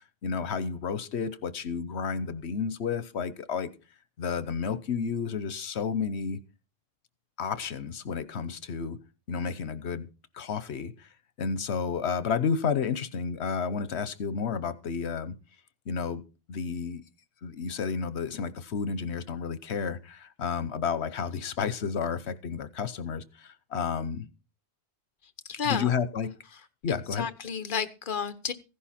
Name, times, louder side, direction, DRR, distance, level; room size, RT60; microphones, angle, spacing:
voice 1, 0.2-3.7 4.2-6.4 7.4-9.0 9.3-10.1 10.3-11.1 11.4-15.3 15.9-16.2 16.5-17.0 17.4-24.3 25.6-26.3 26.8-27.3, left 6 dB, 80° left, 1.2 m, -31 dB
voice 2, 25.4-25.9 26.9-28.5, left 6 dB, 50° left, 1.3 m, -32 dB
15.5 x 11.0 x 4.3 m
omnidirectional pair, 1.1 m